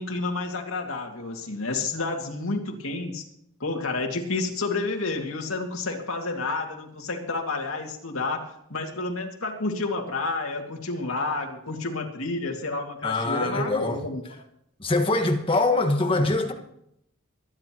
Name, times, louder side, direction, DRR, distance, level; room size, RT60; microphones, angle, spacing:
voice 1, 0.0-3.2 3.6-8.4 8.7-14.2, left 3 dB, 80° left, 2.4 m, -30 dB
voice 2, 13.0-14.0 14.8-16.5, left 2 dB, 25° left, 1.6 m, -23 dB
24.0 x 10.5 x 3.0 m
head